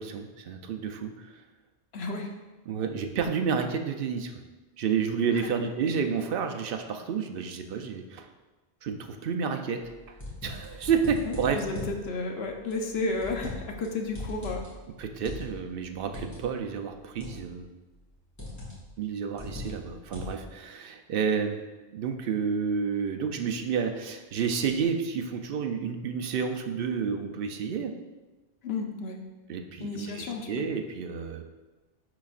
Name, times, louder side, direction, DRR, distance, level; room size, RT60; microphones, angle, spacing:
voice 1, 0.0-1.4 2.7-4.3 4.8-8.3 8.8-10.2 10.4-11.6 15.0-17.7 19.0-21.6 21.9-27.9 29.5-31.5, right 6 dB, 60° right, 5 dB, 0.7 m, -30 dB
voice 2, 1.9-2.3 5.4-5.5 11.3-14.7 28.6-29.2 29.8-30.7, left 3 dB, 65° left, 2 dB, 1.0 m, -32 dB
sound 1, 9.8-12.0 12.7-13.9 14.1-16.4 17.2-17.6 18.4-18.9 19.4-20.5, left 2 dB, 15° left, 1.9 m, -39 dB
10.5 x 4.1 x 2.4 m, 1.2 s
omnidirectional pair, 1.1 m